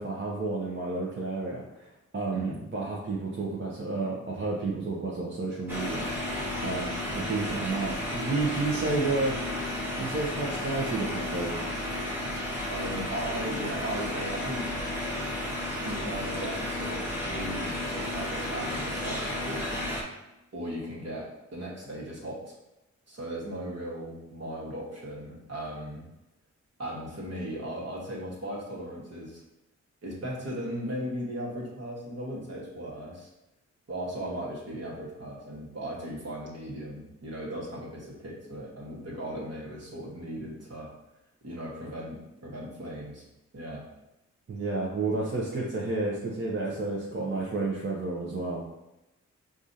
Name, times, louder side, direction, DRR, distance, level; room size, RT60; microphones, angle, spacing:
voice 1, 0.0-9.6 10.0-11.6 44.5-48.6, right 3 dB, 40° right, -4 dB, 0.8 m, -31 dB
sound 1, 5.7-20.0, left 1 dB, 5° right, 1.2 m, -33 dB
voice 2, 12.7-14.8 15.8-19.7 20.5-21.3 21.5-22.5 23.1-26.0 26.8-29.4 30.0-33.3 33.9-40.9 41.4-43.2 43.5-43.8, right 1 dB, 55° right, -4 dB, 1.4 m, -37 dB
4.7 x 2.5 x 2.7 m, 0.94 s
cardioid pair, 55°, 30 cm